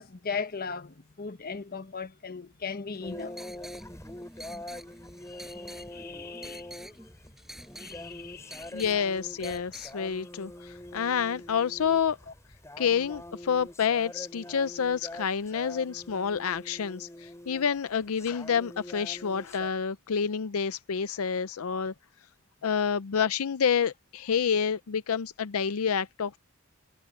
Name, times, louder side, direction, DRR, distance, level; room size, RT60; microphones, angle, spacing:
voice 1, 0.0-3.3 5.3-7.0 7.8-8.8, left 5 dB, 45° left, 1.1 m, -38 dB
sound 1, 2.9-9.9, equal, ahead, 5.1 m, -48 dB
sound 2, 3.0-19.7, left 1 dB, 15° left, 7.6 m, -44 dB
voice 2, 8.7-12.2 12.8-21.9 22.6-26.4, left 7 dB, 80° left, 0.5 m, -28 dB
head